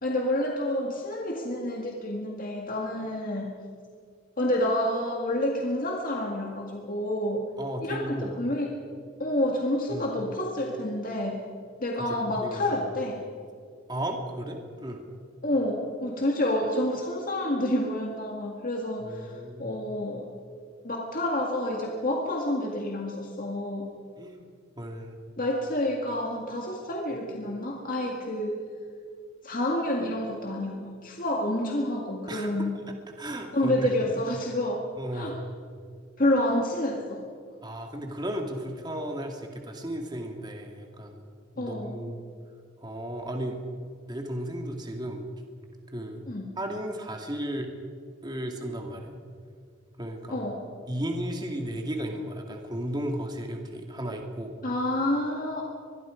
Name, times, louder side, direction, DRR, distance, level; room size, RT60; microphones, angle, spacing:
voice 1, 0.0-3.6 4.4-7.4 7.8-8.9 9.2-11.4 11.8-13.2 15.4-20.3 20.8-23.8 25.4-28.6 29.4-32.7 33.5-35.4 36.2-37.3 41.6-42.1 46.3-46.6 50.3-50.7 54.6-55.6, left 1 dB, 45° left, 0 dB, 2.0 m, -29 dB
voice 2, 7.6-8.3 9.9-10.1 12.0-12.6 13.9-15.0 19.0-19.7 24.2-24.4 24.8-25.2 32.3-32.7 33.2-33.9 35.0-35.4 37.6-41.2 41.6-42.2 42.8-43.6 44.1-45.2 45.9-46.2 46.6-47.7 48.2-49.2 50.0-50.5 50.9-54.5, right 1 dB, 20° right, 2 dB, 2.2 m, -34 dB
24.5 x 22.0 x 5.1 m, 2.2 s
head